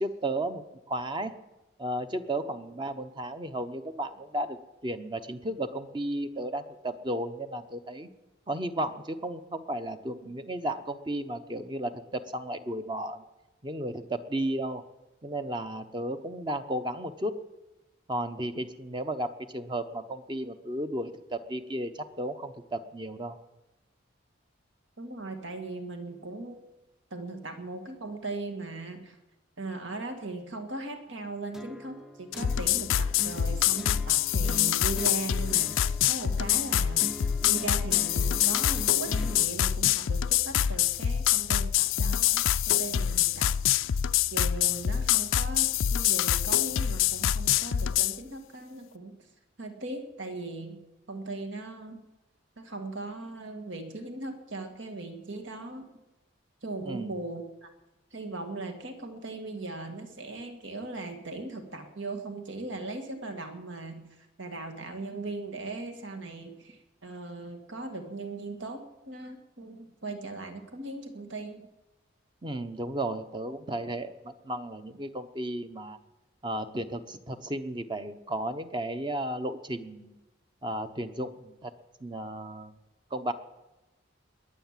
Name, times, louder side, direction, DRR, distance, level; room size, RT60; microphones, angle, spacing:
voice 1, 0.0-1.3 1.8-4.6 4.8-8.1 8.5-13.2 13.6-14.8 15.2-17.3 18.1-23.4 56.9-57.1 72.4-76.0 76.4-80.2 80.6-81.7 82.0-82.7 83.1-83.3, right 1 dB, 25° right, 9 dB, 0.9 m, -34 dB
voice 2, 25.0-26.6 27.1-29.2 29.6-43.6 44.3-49.3 49.6-50.8 51.1-52.0 52.6-55.9 56.6-57.7 58.1-71.7, right 2 dB, 70° right, 5 dB, 1.9 m, -39 dB
sound 1, 31.5-39.5, equal, ahead, 0.5 m, -42 dB
sound 2, 32.3-48.2, left 11 dB, 85° left, 0.4 m, -26 dB
21.0 x 8.2 x 7.4 m, 1.1 s
head